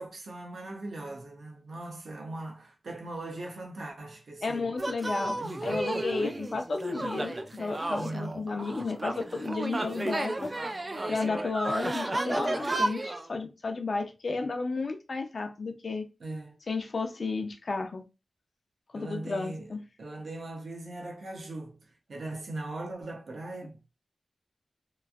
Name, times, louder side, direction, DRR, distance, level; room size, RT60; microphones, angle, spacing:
voice 1, 0.0-4.7 5.4-5.9 7.9-8.5 16.2-16.6 18.9-23.8, right 2 dB, 85° right, 0.7 m, -40 dB
voice 2, 4.4-10.5 11.1-16.0 16.7-18.0 18.9-19.8, left 3 dB, 65° left, 0.5 m, -33 dB
sound 1, 4.8-13.3, right 2 dB, 35° right, 0.3 m, -33 dB
3.0 x 2.5 x 2.4 m
wide cardioid pair, 95°, 0 cm